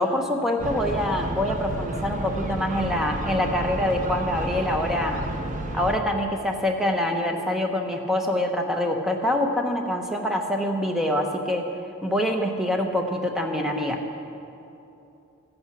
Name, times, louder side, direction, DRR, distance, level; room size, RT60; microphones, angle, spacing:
voice 1, 0.0-5.2 5.7-11.7 12.0-14.0, left 1 dB, ahead, 2 dB, 0.8 m, -25 dB
sound 1, 0.6-6.0, right 1 dB, 35° right, 0.7 m, -31 dB
14.5 x 8.7 x 6.0 m, 2.8 s
head